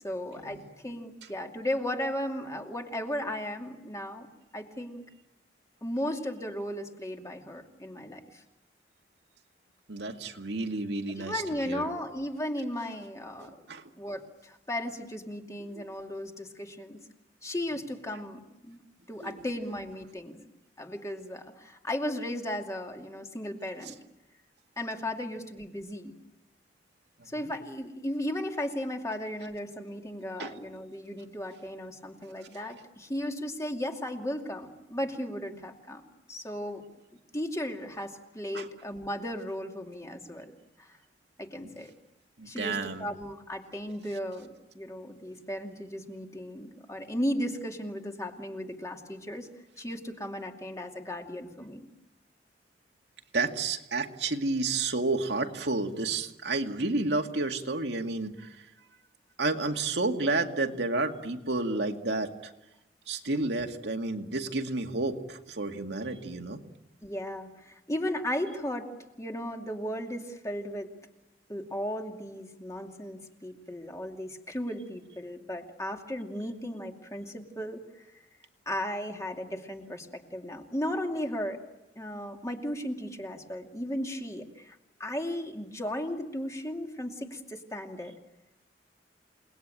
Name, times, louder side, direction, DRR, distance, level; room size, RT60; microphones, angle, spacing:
voice 1, 0.0-4.3 4.5-5.0 5.8-8.4 11.2-13.6 14.0-17.0 17.4-18.8 19.1-20.4 20.8-23.9 24.8-26.2 27.3-36.0 36.3-36.9 37.3-40.5 40.8-41.0 41.4-41.9 42.4-49.5 49.8-51.9 67.0-68.9 69.2-70.9 71.5-78.1 78.7-81.6 82.0-88.2, left 1 dB, 20° left, 3 dB, 2.5 m, -35 dB
voice 2, 9.9-11.9 13.4-13.8 15.7-15.9 19.2-19.4 23.9-24.0 30.4-30.5 38.5-38.7 41.6-41.7 42.4-43.1 53.3-58.7 59.4-62.5 63.1-66.6, right 3 dB, 80° right, 4 dB, 2.2 m, -31 dB
29.0 x 20.0 x 9.1 m, 0.95 s
head